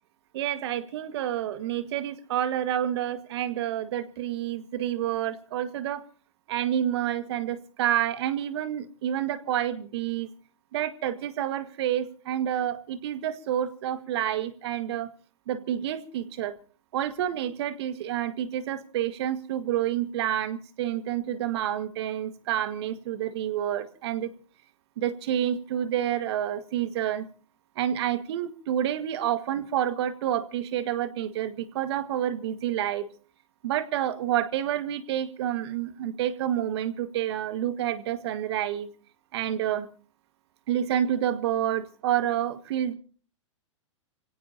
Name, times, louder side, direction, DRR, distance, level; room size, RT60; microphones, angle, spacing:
voice 1, 0.3-6.0 6.5-10.3 10.7-15.1 15.5-16.5 16.9-24.3 25.0-27.3 27.8-33.1 33.6-38.9 39.3-39.9 40.7-42.9, right 11 dB, 55° right, 10 dB, 1.9 m, -29 dB
29.0 x 17.0 x 2.9 m, 0.41 s
hypercardioid pair, 105°, 16 cm